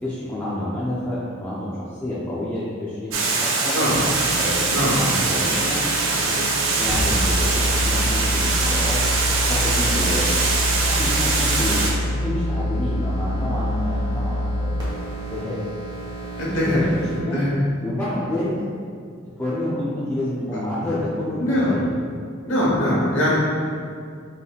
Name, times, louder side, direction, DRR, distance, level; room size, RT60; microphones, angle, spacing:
voice 1, 0.0-3.8 4.4-5.8 6.2-10.3 10.9-15.6 16.5-17.5 17.8-18.6 19.2-21.9, left 1 dB, 10° left, -10 dB, 0.5 m, -29 dB
Water, 3.1-11.9, right 3 dB, 80° right, 0.6 m, -22 dB
sound 1, 3.8-17.2, equal, 20° right, 1.2 m, -27 dB
voice 2, 16.4-16.8 17.2-17.5 21.3-21.7 22.4-23.4, equal, 70° left, -6 dB, 1.2 m, -21 dB
5.3 x 3.2 x 2.4 m, 2.2 s
head